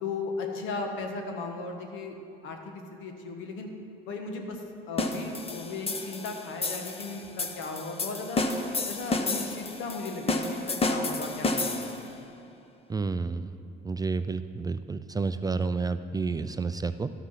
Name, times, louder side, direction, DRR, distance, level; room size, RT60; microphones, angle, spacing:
voice 1, 0.0-2.2 2.4-3.7 4.1-8.4 8.9-12.0, left 3 dB, 80° left, 3 dB, 1.3 m, -36 dB
sound 1, 5.0-12.1, left 2 dB, 30° left, 0.9 m, -31 dB
voice 2, 12.9-13.6 13.8-17.1, right 4 dB, 20° right, 11 dB, 0.3 m, -30 dB
12.0 x 6.1 x 5.8 m, 2.8 s
supercardioid pair, 80°, 20 cm